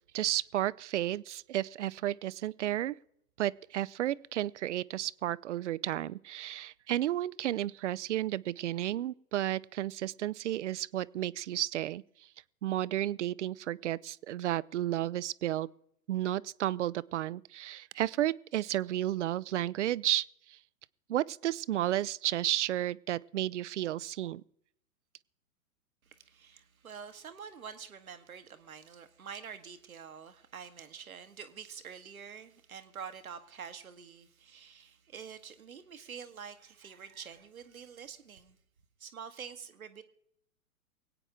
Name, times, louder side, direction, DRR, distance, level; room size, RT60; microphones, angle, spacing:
voice 1, 0.1-3.0 3.4-12.0 12.6-15.7 16.1-20.6 21.1-24.4, right 13 dB, 55° right, 0.5 m, -32 dB
voice 2, 26.1-38.6 39.0-40.0, right 7 dB, 75° right, 1.5 m, -47 dB
24.5 x 8.9 x 3.7 m
figure-of-eight pair, 110°, 43 cm